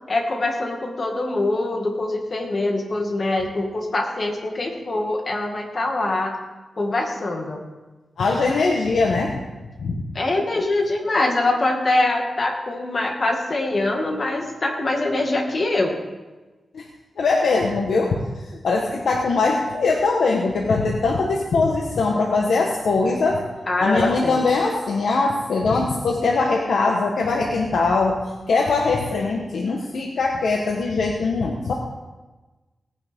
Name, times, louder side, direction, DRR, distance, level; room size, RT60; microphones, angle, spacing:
voice 1, 0.1-6.3 6.8-7.6 10.1-16.0 23.7-24.4, left 2 dB, 40° left, 1 dB, 2.1 m, -23 dB
voice 2, 8.2-9.4 9.8-10.0 10.5-10.6 16.7-16.8 17.2-18.2 18.4-23.4 23.8-28.2 28.5-31.7, left 3 dB, 80° left, 0 dB, 1.3 m, -21 dB
18.0 x 9.9 x 3.7 m, 1.2 s
wide cardioid pair, 125°, 0 cm